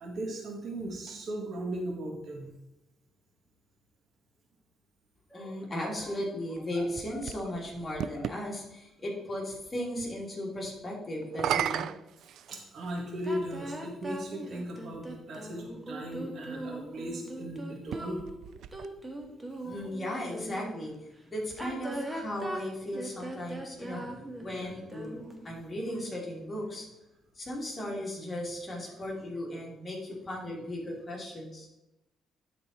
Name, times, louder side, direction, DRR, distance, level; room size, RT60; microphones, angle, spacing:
voice 1, 0.0-2.5 12.5-18.2, right 1 dB, 60° right, 1 dB, 1.8 m, -37 dB
voice 2, 5.3-11.9 19.6-20.9 21.3-25.2 25.4-26.9 27.3-31.7, left 1 dB, 25° left, -3 dB, 2.9 m, -36 dB
sound 1, 6.6-8.4 11.2-13.0 13.9-14.0 17.8-19.3, right 10 dB, 75° right, 0.3 m, -35 dB
sound 2, 13.2-20.8 21.5-25.5, right 1 dB, 15° right, 1.6 m, -40 dB
11.5 x 4.3 x 4.4 m, 0.91 s
cardioid pair, 90°, 0 cm